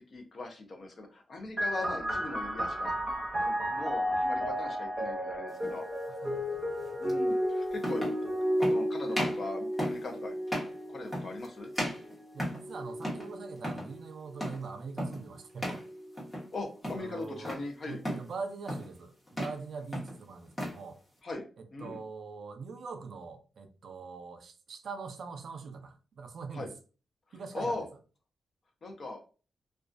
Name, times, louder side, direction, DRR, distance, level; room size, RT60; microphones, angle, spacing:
voice 1, 0.1-2.9 3.4-5.9 7.0-8.0 8.6-10.3 10.9-11.7 16.5-18.0 21.2-22.0 26.5-26.7 27.5-27.9 28.8-29.2, left 2 dB, 45° left, 0.5 m, -40 dB
sound 1, 1.6-14.8 15.7-16.4, equal, 15° right, 0.9 m, -33 dB
sound 2, 5.6-5.8 7.1-7.2 7.8-8.2 8.6-8.8 9.1-9.4 9.8-10.1 10.5-10.8 11.1-11.5 11.7-12.7 13.0-13.3 13.6-13.9 14.4-14.7 15.0-15.2 15.6-15.9 16.2-16.5 16.8-17.6 18.0-18.3 18.7-19.0 19.3-19.6 19.9-20.8, equal, 15° left, 0.9 m, -35 dB
voice 2, 6.1-7.0 12.3-15.8 16.9-17.6 17.8-21.0 21.6-26.7 27.3-27.8, right 4 dB, 60° right, 0.4 m, -43 dB
2.3 x 2.3 x 2.5 m
wide cardioid pair, 130°, 0 cm